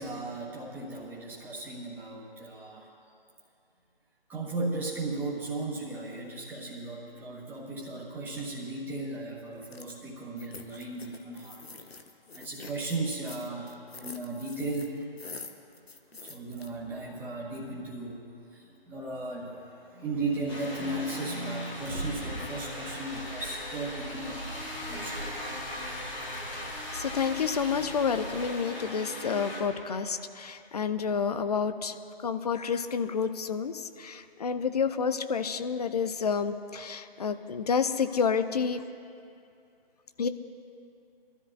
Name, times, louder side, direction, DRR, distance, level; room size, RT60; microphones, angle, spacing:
voice 1, 0.0-2.9 4.3-11.6 12.3-15.0 16.2-18.2 18.5-25.3, right 2 dB, 5° right, -6 dB, 1.6 m, -36 dB
sound 1, 9.6-10.0 10.4-16.7, left 4 dB, 80° left, 1.1 m, -46 dB
sound 2, 20.5-29.6, left 1 dB, 15° left, 1.3 m, -39 dB
sound 3, 21.7-28.4, right 1 dB, 80° right, 1.9 m, -43 dB
voice 2, 26.5-31.9 32.2-38.8 40.2-40.3, left 6 dB, 40° left, 11 dB, 0.5 m, -29 dB
21.5 x 13.0 x 2.7 m, 2.5 s
figure-of-eight pair, 145°, 30 cm